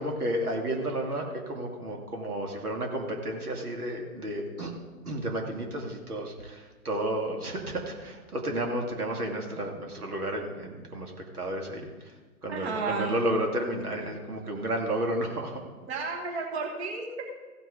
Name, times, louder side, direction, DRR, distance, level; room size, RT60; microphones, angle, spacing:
voice 1, 0.0-4.7 5.1-12.1 12.4-15.6, right 1 dB, 85° right, 1 dB, 2.4 m, -32 dB
voice 2, 12.5-13.1 15.9-17.4, right 4 dB, 45° right, 2 dB, 1.7 m, -32 dB
15.0 x 6.2 x 4.9 m, 1.3 s
hypercardioid pair, 145°, 44 cm